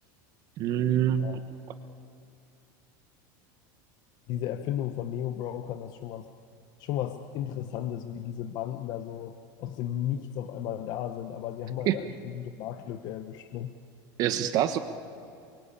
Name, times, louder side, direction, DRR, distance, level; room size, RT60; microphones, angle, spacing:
voice 1, 0.6-1.4 11.9-12.0 14.2-14.8, right 10 dB, 35° right, 10 dB, 1.1 m, -25 dB
voice 2, 4.3-6.3 6.8-13.7, left 11 dB, 40° left, 9 dB, 1.0 m, -34 dB
28.0 x 23.5 x 8.7 m, 2.6 s
supercardioid pair, 170°, 11 cm